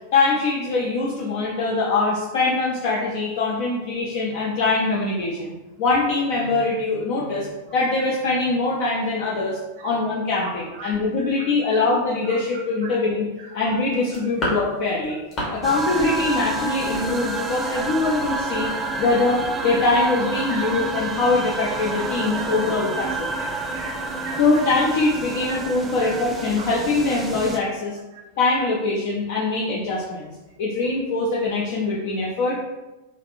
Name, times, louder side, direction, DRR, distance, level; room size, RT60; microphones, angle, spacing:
voice 1, 0.1-7.5 7.7-13.3 13.5-15.2 15.5-18.7 19.0-23.3 24.4-28.0 28.4-30.3 30.6-32.6, left 3 dB, 50° left, -5 dB, 0.5 m, -23 dB
voice 2, 10.4-11.3 11.6-11.8 12.2-12.4 12.8-12.9 13.4-13.7 14.4-14.5 15.4-15.5 17.4-18.1 18.4-19.2 19.8-19.9 20.5-20.9 22.3-22.7 23.0-24.6 25.5-25.6 26.0-26.1 26.5-26.7 28.1-28.2, right 3 dB, 55° right, -1 dB, 0.6 m, -40 dB
sound 1, 13.9-15.6 15.9-16.2 16.4-17.9 18.2-18.4 18.6-18.8 19.1-19.2, left 1 dB, 30° left, 1.1 m, -31 dB
sound 2, 15.6-27.6, right 3 dB, 15° right, 0.3 m, -29 dB
3.3 x 2.4 x 2.4 m, 1.1 s
figure-of-eight pair, 90°, 0 cm